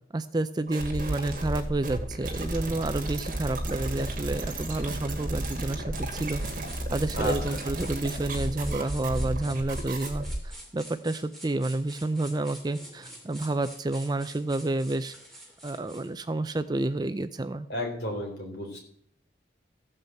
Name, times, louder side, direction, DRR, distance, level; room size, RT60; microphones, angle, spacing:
voice 1, 0.1-6.4 6.9-15.1 15.6-17.7, right 2 dB, 20° right, 12 dB, 0.4 m, -30 dB
sound 1, 0.7-10.5, right 1 dB, 45° right, 2.2 m, -33 dB
sound 2, 6.4-16.1, right 1 dB, ahead, 2.6 m, -47 dB
voice 2, 7.2-7.6 17.7-18.8, left 1 dB, 55° left, 0 dB, 3.9 m, -32 dB
14.5 x 5.5 x 7.7 m, 0.65 s
head